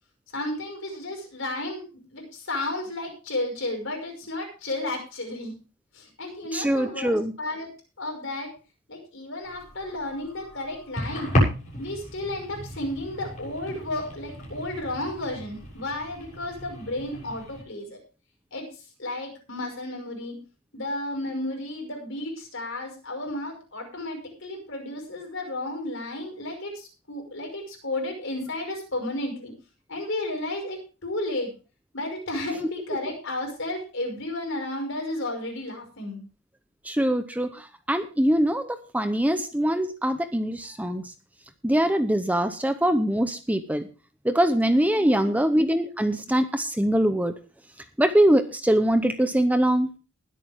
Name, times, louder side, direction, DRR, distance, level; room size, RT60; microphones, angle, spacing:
voice 1, 0.3-5.5 5.9-7.7 8.0-8.5 8.9-11.3 11.8-18.0 18.5-18.7 19.0-20.4 20.7-29.5 29.9-31.5 31.9-36.2 44.9-45.4, left 1 dB, 60° left, 2 dB, 5.7 m, -33 dB
voice 2, 6.5-7.3 36.8-41.1 41.6-43.9 44.2-47.3 48.0-49.9, right 1 dB, 5° right, 9 dB, 0.8 m, -23 dB
sound 1, 9.4-17.6, equal, 35° left, 7.4 m, -32 dB
20.5 x 8.5 x 3.6 m, 0.34 s
head